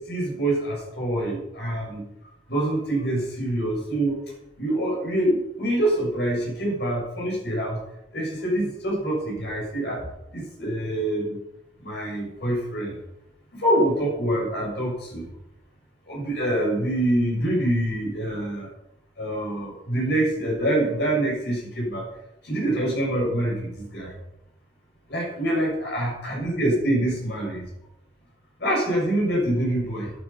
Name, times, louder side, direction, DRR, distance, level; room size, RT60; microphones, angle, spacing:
voice 1, 0.1-2.0 2.5-4.2 4.6-7.8 8.1-10.0 10.3-11.4 11.8-13.0 13.5-15.3 16.1-18.7 19.2-22.0 22.4-24.1 25.1-27.6 28.6-30.1, right 1 dB, 65° left, -2 dB, 7.1 m, -25 dB
13.5 x 11.0 x 5.8 m, 0.87 s
head